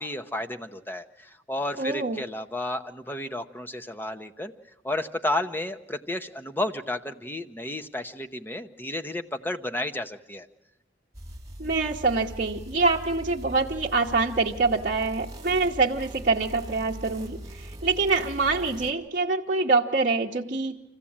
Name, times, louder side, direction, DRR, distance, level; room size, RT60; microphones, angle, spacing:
voice 1, 0.0-4.5 4.8-10.5, left 1 dB, 10° left, 7 dB, 0.8 m, -32 dB
voice 2, 1.8-2.2 11.6-20.8, right 3 dB, 40° right, -3 dB, 1.0 m, -25 dB
sound 1, 11.1-18.9, right 1 dB, 15° right, 2.1 m, -41 dB
25.5 x 15.5 x 8.7 m, 0.94 s
head